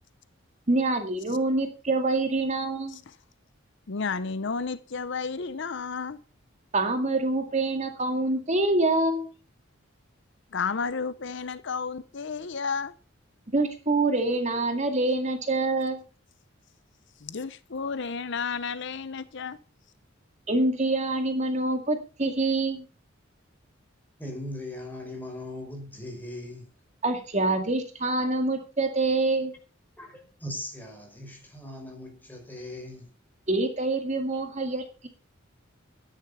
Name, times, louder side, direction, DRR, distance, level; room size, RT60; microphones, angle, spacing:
voice 1, 0.7-3.0 6.7-9.3 13.5-16.0 20.5-22.8 27.0-29.5 33.5-35.1, right 2 dB, 35° right, 2.1 m, -26 dB
voice 2, 3.9-6.2 10.5-12.9 17.2-19.6, left 5 dB, 60° left, 0.7 m, -32 dB
voice 3, 24.2-26.7 30.0-33.1, left 1 dB, 10° left, 5.3 m, -39 dB
13.0 x 10.0 x 5.6 m
head